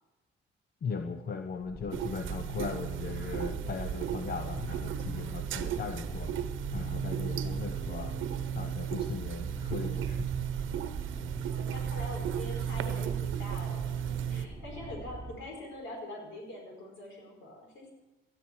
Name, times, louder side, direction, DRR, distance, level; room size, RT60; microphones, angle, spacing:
voice 1, 0.8-6.4 6.7-8.2 8.5-10.4, left 5 dB, 50° left, 7 dB, 1.0 m, -38 dB
sound 1, 1.6-15.3, right 1 dB, 10° left, 4.1 m, -43 dB
sound 2, 1.9-14.5, right 10 dB, 75° right, 0.9 m, -35 dB
voice 2, 11.1-17.9, left 1 dB, 75° left, 1 dB, 5.4 m, -44 dB
18.0 x 13.0 x 4.7 m, 1.1 s
cardioid pair, 90°, 20 cm